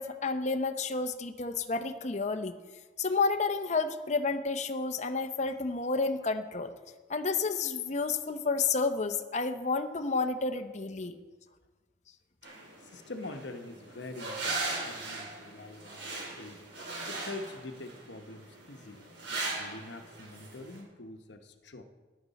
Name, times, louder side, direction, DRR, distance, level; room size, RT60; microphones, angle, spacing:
voice 1, 0.0-2.6 3.0-6.7 7.1-11.2, left 4 dB, 40° left, 8 dB, 0.7 m, -30 dB
sound 1, 12.4-20.8, right 3 dB, 75° right, 4.0 m, -39 dB
voice 2, 12.8-19.1 19.6-21.8, left 2 dB, 70° left, 7 dB, 1.0 m, -45 dB
14.5 x 11.0 x 4.1 m, 1.3 s
head